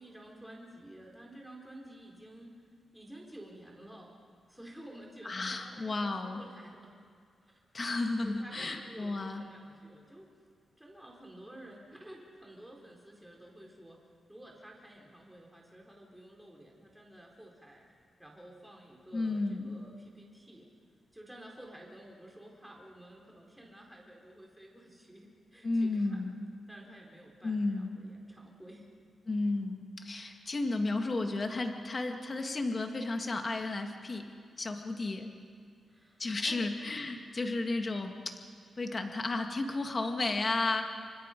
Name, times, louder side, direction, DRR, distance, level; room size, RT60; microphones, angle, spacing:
voice 1, 0.0-2.6 2.9-4.2 4.5-7.0 7.4-7.6 8.2-10.3 10.8-14.0 14.3-17.9 18.2-20.7 21.1-26.3 26.7-28.9 34.9-35.0 35.9-36.6, right 1 dB, 5° right, -1 dB, 4.1 m, -52 dB
voice 2, 5.3-6.4 7.7-9.5 19.1-19.8 25.6-26.5 27.4-28.0 29.3-34.3 34.6-35.3 36.2-38.4 38.8-40.9, left 2 dB, 30° left, 4 dB, 1.8 m, -33 dB
28.5 x 24.5 x 5.2 m, 2.3 s
wide cardioid pair, 140°, 0 cm